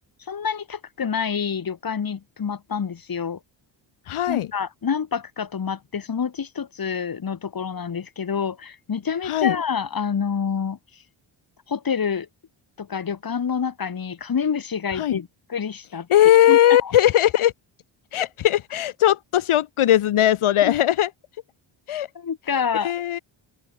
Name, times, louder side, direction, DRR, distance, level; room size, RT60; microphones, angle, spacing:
voice 1, 0.3-3.4 4.3-10.8 11.7-12.3 12.8-16.1 16.5-16.9 22.1-22.9, left 6 dB, 45° left, 4.2 m, -27 dB
voice 2, 4.1-4.5 9.3-9.6 15.0-15.2 16.1-17.5 18.1-21.1 21.9-22.1 22.8-23.2, left 12 dB, 80° left, 2.6 m, -19 dB
open air
cardioid pair, 105°, 49 cm